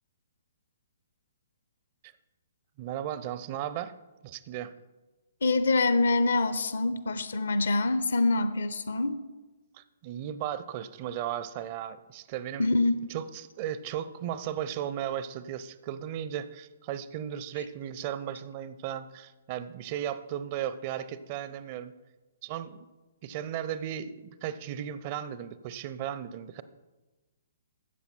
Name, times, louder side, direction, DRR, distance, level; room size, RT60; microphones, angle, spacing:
voice 1, 2.8-3.9 4.2-4.7 9.7-12.7 13.1-21.9 22.4-22.9 23.2-26.6, right 10 dB, 35° right, 14 dB, 0.6 m, -36 dB
voice 2, 5.4-9.2 12.6-13.0, left 2 dB, 65° left, 12 dB, 0.8 m, -25 dB
13.5 x 8.2 x 4.4 m, 1.2 s
figure-of-eight pair, 125°, 0 cm